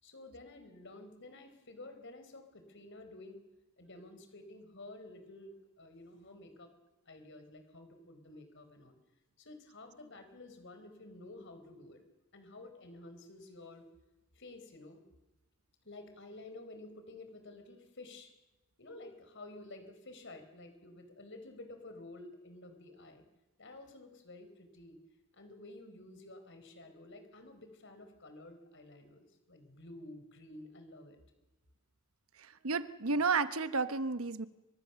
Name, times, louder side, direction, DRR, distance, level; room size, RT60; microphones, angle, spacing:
voice 1, 0.0-3.4 3.8-6.7 7.1-9.0 9.4-12.0 12.3-13.8 14.3-15.0 15.8-18.3 18.8-23.2 23.6-25.0 25.3-31.2, left 2 dB, 60° left, 7 dB, 4.5 m, -51 dB
voice 2, 32.6-34.5, right 4 dB, 75° right, 12 dB, 1.1 m, -31 dB
30.0 x 24.5 x 7.0 m, 1.1 s
head